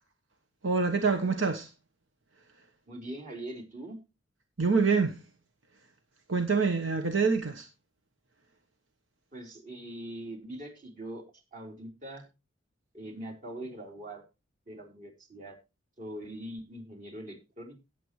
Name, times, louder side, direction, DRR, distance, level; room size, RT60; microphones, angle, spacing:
voice 1, 0.6-1.7 4.6-5.1 6.3-7.7, right 4 dB, 75° right, 1.2 m, -26 dB
voice 2, 2.9-4.0 9.3-11.2 11.5-12.3 12.9-14.2 14.7-15.6 16.0-17.8, right 1 dB, 40° right, 4.0 m, -42 dB
18.0 x 7.8 x 3.2 m
head